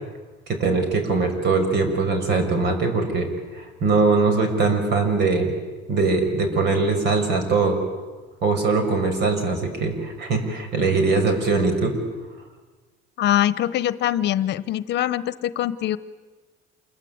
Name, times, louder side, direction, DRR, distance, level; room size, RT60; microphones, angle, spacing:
voice 1, 0.5-3.3 3.5-5.5 5.9-7.8 8.4-11.9, right 3 dB, 55° right, 7 dB, 6.0 m, -21 dB
voice 2, 13.2-16.0, left 12 dB, 55° left, 16 dB, 1.1 m, -23 dB
28.0 x 22.0 x 9.5 m, 1.3 s
cardioid pair, 145°, 21 cm